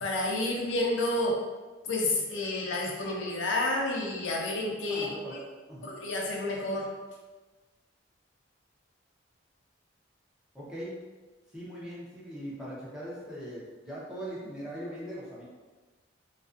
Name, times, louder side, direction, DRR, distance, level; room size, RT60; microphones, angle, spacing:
voice 1, 0.0-1.4 1.9-5.1 5.9-6.9, left 2 dB, 85° left, -1 dB, 0.5 m, -30 dB
voice 2, 4.9-5.9 10.5-11.0 11.5-15.4, equal, 5° right, -8 dB, 0.5 m, -40 dB
2.4 x 2.2 x 2.4 m, 1.2 s
head